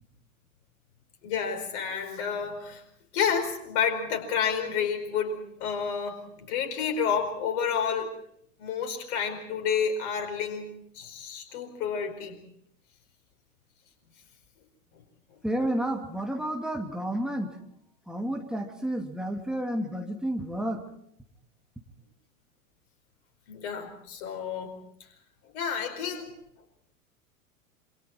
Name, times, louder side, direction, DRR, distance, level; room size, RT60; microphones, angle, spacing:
voice 1, 1.2-2.8 3.1-8.1 8.6-12.4 14.9-15.0 23.5-24.7 25.5-26.3, left 7 dB, 50° left, 5 dB, 4.9 m, -30 dB
voice 2, 15.4-17.6 18.1-20.8, right 1 dB, ahead, 2 dB, 2.5 m, -31 dB
27.5 x 24.5 x 4.6 m, 0.70 s
figure-of-eight pair, 90°, 44 cm